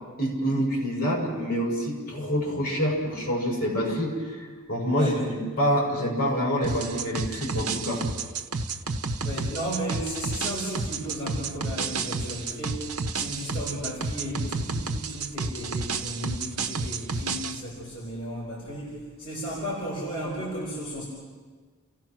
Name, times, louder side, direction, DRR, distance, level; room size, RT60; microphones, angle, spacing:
voice 1, 0.2-8.0, equal, 45° left, -2 dB, 6.7 m, -27 dB
sound 1, 6.6-17.6, right 4 dB, 80° right, 1.1 m, -31 dB
voice 2, 9.2-12.9 13.1-21.0, equal, 25° left, -6 dB, 4.5 m, -34 dB
29.5 x 16.5 x 6.2 m, 1.5 s
head